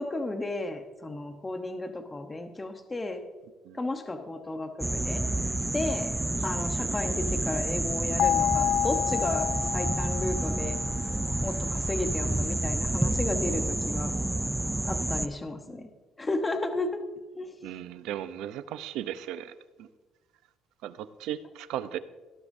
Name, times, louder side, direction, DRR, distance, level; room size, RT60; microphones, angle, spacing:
voice 1, 0.0-3.2 3.7-5.2 5.7-10.8 11.4-14.1 14.8-15.9 16.2-17.0 17.3-17.5, left 2 dB, 15° left, 6 dB, 0.9 m, -33 dB
sound 1, 4.8-15.3, right 2 dB, 10° right, 0.4 m, -29 dB
sound 2, 8.2-11.1, left 12 dB, 65° left, 0.4 m, -29 dB
voice 2, 17.6-19.5 19.8-19.9 20.8-22.0, right 11 dB, 80° right, 12 dB, 0.6 m, -36 dB
17.5 x 12.0 x 2.7 m, 1.3 s
cardioid pair, 135°, 0 cm